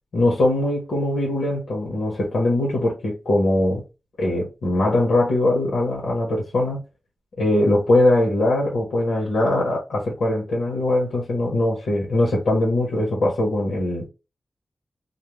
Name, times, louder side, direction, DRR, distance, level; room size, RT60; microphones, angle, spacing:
voice 1, 0.1-3.8 4.2-6.8 7.4-14.1, left 1 dB, 90° left, 0.9 m, -21 dB
2.4 x 2.1 x 3.0 m
wide cardioid pair, 170°, 0 cm